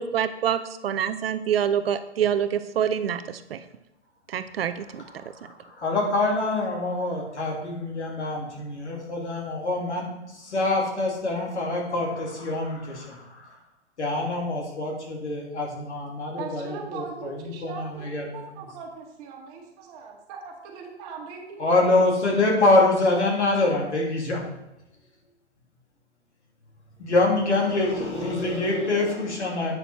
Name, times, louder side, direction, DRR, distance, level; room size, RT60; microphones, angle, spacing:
voice 1, 0.0-3.6 4.3-5.0, right 9 dB, 55° right, 11 dB, 0.7 m, -26 dB
voice 2, 5.1-13.6 14.0-18.6 21.6-24.4 27.0-29.7, left 2 dB, 75° left, -1 dB, 2.8 m, -25 dB
voice 3, 16.4-22.1, right 5 dB, 35° right, 1 dB, 1.9 m, -40 dB
8.8 x 6.7 x 4.4 m, 0.89 s
figure-of-eight pair, 125°, 35 cm